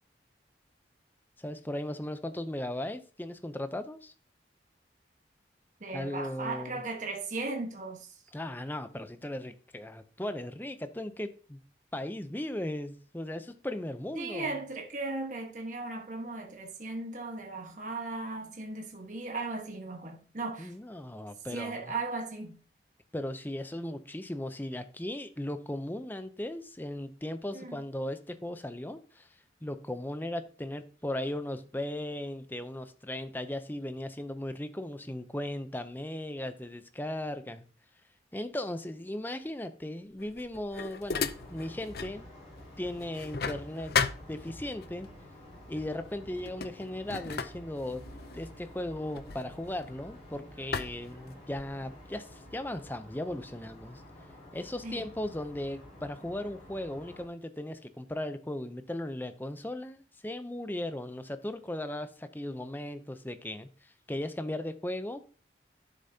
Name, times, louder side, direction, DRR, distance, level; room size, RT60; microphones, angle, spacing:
voice 1, 1.4-4.1 5.9-6.8 8.3-11.6 11.9-14.5 20.6-21.8 23.1-29.3 29.6-37.6 38.3-42.3 42.8-45.1 45.7-48.0 48.3-54.0 54.5-65.2, left 1 dB, 10° left, 0.6 m, -37 dB
voice 2, 5.8-8.2 14.1-20.7 21.5-22.6 27.5-27.8 54.8-55.1, right 3 dB, 45° right, 1.3 m, -37 dB
sound 1, 40.2-42.2 42.6-44.9 45.8-46.0 46.3-50.2 50.7-51.9, left 6 dB, 60° left, 0.5 m, -36 dB
sound 2, 41.2-57.3, equal, 35° left, 5.3 m, -50 dB
11.0 x 6.8 x 2.8 m
head